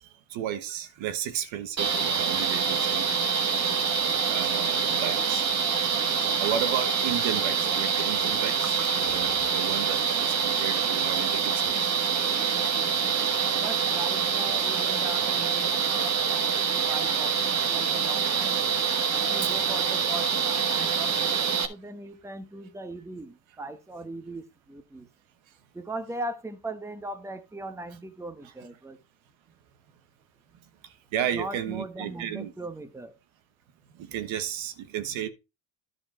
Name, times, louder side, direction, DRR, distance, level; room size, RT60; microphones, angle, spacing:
voice 1, 0.3-3.1 4.3-5.5 6.1-11.8 19.4-19.5 30.8-32.5 34.0-35.3, right 10 dB, 75° right, 1.3 m, -33 dB
sound 1, 1.8-21.7, right 6 dB, 35° right, 1.2 m, -26 dB
voice 2, 13.5-18.6 19.1-25.1 25.7-29.0 31.3-33.1, right 1 dB, 5° right, 1.1 m, -39 dB
11.0 x 5.0 x 4.3 m
cardioid pair, 105°, 48 cm